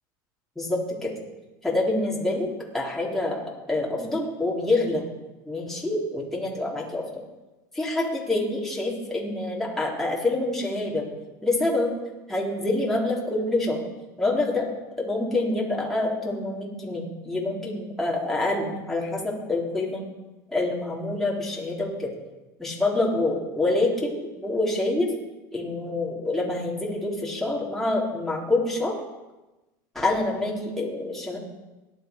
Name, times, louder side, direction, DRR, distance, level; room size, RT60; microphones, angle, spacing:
voice 1, 0.6-1.1 1.6-2.5 2.7-5.0 5.5-7.0 7.7-11.1 11.4-11.9 12.3-13.8 14.2-14.7 15.0-20.0 20.5-22.1 22.6-25.1 25.5-28.9 29.9-31.4, left 2 dB, 5° left, -4 dB, 3.7 m, -26 dB
18.5 x 11.0 x 4.7 m, 1.0 s
supercardioid pair, 115°, 11 cm